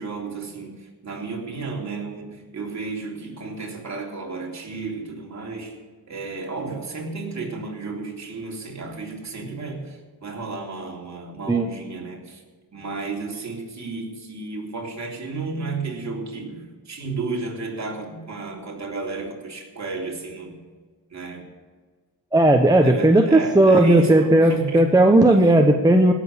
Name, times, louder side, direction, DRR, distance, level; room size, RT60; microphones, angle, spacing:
voice 1, 0.0-5.8 6.1-12.4 12.7-20.6 21.1-21.5 22.8-24.9, right 3 dB, 40° right, -1 dB, 3.3 m, -32 dB
voice 2, 22.3-26.1, right 1 dB, 10° right, 3 dB, 1.0 m, -15 dB
17.0 x 7.3 x 6.5 m, 1.5 s
cardioid pair, 90°, 44 cm